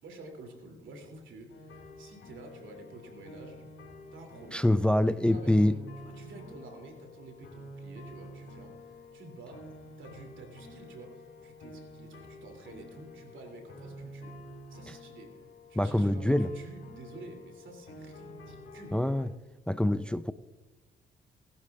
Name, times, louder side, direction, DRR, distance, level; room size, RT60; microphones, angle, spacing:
voice 1, 0.0-3.6 4.1-4.7 5.3-14.3 14.7-19.0, right 2 dB, 75° right, 2.8 m, -49 dB
sound 1, 1.5-19.3, equal, 75° left, 4.4 m, -48 dB
voice 2, 4.5-5.8 15.7-16.5 18.9-19.3 19.7-20.3, left 1 dB, 5° left, 0.4 m, -25 dB
19.5 x 11.5 x 2.4 m
supercardioid pair, 60°, 20 cm